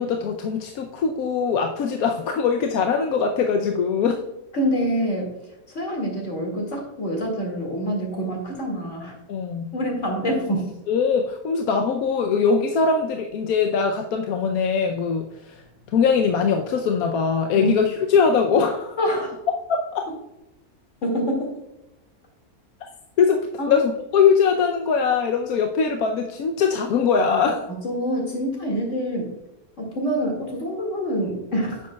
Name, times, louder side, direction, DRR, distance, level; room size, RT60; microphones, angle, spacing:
voice 1, 0.0-4.2 9.3-9.7 10.9-15.6 15.9-19.0 19.7-20.0 23.2-27.6, left 6 dB, 80° left, 4 dB, 1.1 m, -21 dB
voice 2, 4.5-5.3 5.7-9.1 9.7-10.7 17.5-17.8 19.0-19.3 21.0-21.5 23.6-23.8 27.8-29.3 29.8-31.8, equal, 55° left, 0 dB, 2.5 m, -26 dB
9.7 x 7.5 x 2.3 m, 0.94 s
omnidirectional pair, 1.6 m